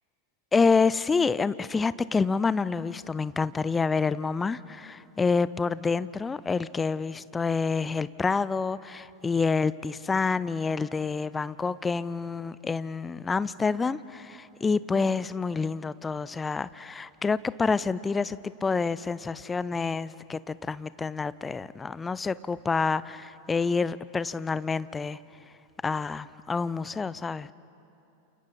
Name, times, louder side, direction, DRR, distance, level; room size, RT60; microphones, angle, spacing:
voice 1, 0.5-25.2 25.8-27.5, left 4 dB, 15° left, 18 dB, 0.5 m, -28 dB
30.0 x 28.5 x 4.1 m, 2.8 s
figure-of-eight pair, 90°, 0 cm